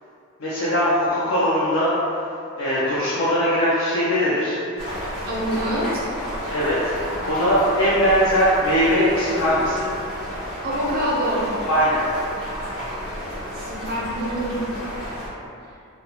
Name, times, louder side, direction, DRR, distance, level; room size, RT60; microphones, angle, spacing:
voice 1, 0.4-2.0 2.6-4.6 6.5-9.9 11.7-12.0, equal, 60° left, -8 dB, 0.4 m, -20 dB
sound 1, 4.8-15.3, equal, 85° left, 1.0 m, -32 dB
voice 2, 5.3-6.1 10.6-11.4 13.5-14.5, equal, 40° right, -5 dB, 0.5 m, -25 dB
2.4 x 2.1 x 2.8 m, 2.5 s
head